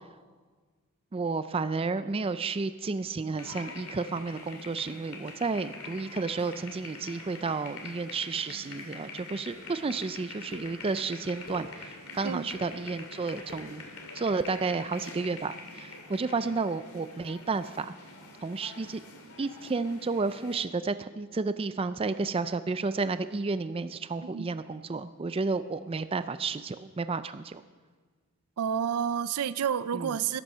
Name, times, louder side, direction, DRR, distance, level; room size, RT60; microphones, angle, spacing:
voice 1, 1.1-13.8 14.1-17.9 18.4-19.0 19.4-27.6 29.9-30.1, right 4 dB, 25° right, 12 dB, 0.4 m, -31 dB
sound 1, 3.4-20.6, left 3 dB, 80° left, 2.3 m, -45 dB
sound 2, 9.5-9.6 10.5-10.6 11.2-11.6 12.3-12.6 13.3-13.6 14.3-14.5, left 2 dB, 50° left, 3.1 m, -47 dB
voice 2, 28.6-30.4, right 8 dB, 85° right, 16 dB, 0.5 m, -30 dB
13.0 x 11.5 x 5.5 m, 1.5 s
head